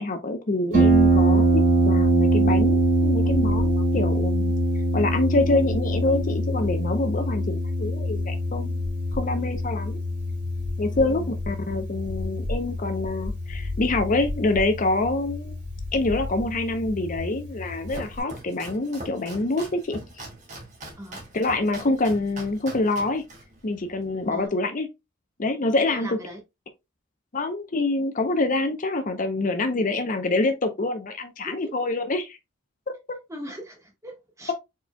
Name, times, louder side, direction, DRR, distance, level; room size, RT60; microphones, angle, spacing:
voice 1, 0.0-4.5 4.9-8.8 9.1-10.0 10.8-15.6 15.9-20.0 21.3-23.2 23.6-24.9 25.4-26.2 27.3-32.4 32.9-33.0, left 2 dB, 40° left, 0.6 m, -26 dB
Harp, 0.7-18.2, right 1 dB, 55° right, 2.9 m, -24 dB
voice 2, 10.8-11.3 21.0-21.2 24.3-24.5 25.9-26.4 31.4-31.7 33.3-34.5, right 1 dB, 15° right, 1.3 m, -39 dB
Domestic sounds home sounds, 17.5-24.5, right 1 dB, 40° right, 1.8 m, -42 dB
4.7 x 4.1 x 2.2 m
head